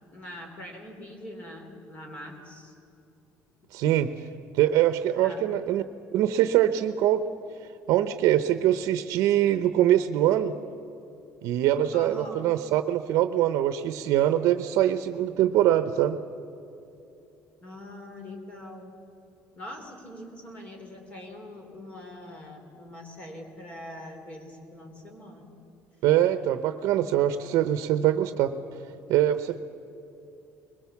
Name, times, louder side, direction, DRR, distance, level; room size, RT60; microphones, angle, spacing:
voice 1, 0.1-2.7 5.1-5.4 11.9-12.5 17.6-18.9 19.5-25.5, left 1 dB, 25° left, 3 dB, 3.3 m, -43 dB
voice 2, 3.7-4.1 4.5-5.8 6.1-7.2 7.9-10.5 11.4-16.2 26.0-28.5 29.1-29.6, right 12 dB, 75° right, 11 dB, 0.8 m, -23 dB
22.0 x 20.5 x 7.1 m, 2.8 s
cardioid pair, 175°, 5 cm